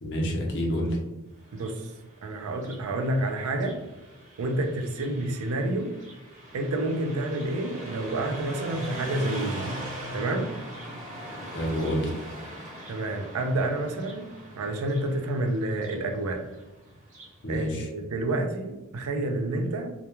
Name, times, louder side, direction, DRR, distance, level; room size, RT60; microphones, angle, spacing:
voice 1, 0.0-1.0 11.5-12.1 17.4-17.9, equal, 60° left, -1 dB, 0.6 m, -28 dB
Car passing by, 1.4-17.4, right 1 dB, 35° right, 0.8 m, -41 dB
voice 2, 1.5-1.9 2.2-3.8 4.4-5.9 6.5-10.6 12.9-14.3 14.6-16.4 17.5-19.9, right 2 dB, 75° right, 5 dB, 0.4 m, -29 dB
2.2 x 2.1 x 2.9 m, 1.0 s
head